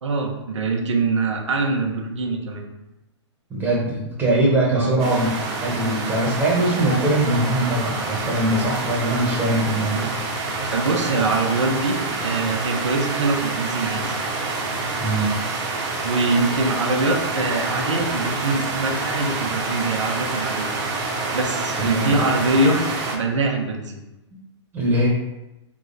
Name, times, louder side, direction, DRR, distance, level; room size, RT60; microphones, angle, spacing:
voice 1, 0.0-2.6 4.7-4.9 10.7-14.2 16.0-20.7 21.3-22.8 23.1-24.0, right 3 dB, 85° right, 1 dB, 1.1 m, -23 dB
voice 2, 3.5-5.3 5.6-10.1 15.0-15.3 21.8-22.2 24.7-25.1, right 1 dB, 15° right, -5 dB, 1.2 m, -21 dB
sound 1, 5.0-23.2, right 3 dB, 35° right, 1.1 m, -27 dB
3.7 x 3.2 x 4.0 m, 0.95 s
hypercardioid pair, 140°, 15 cm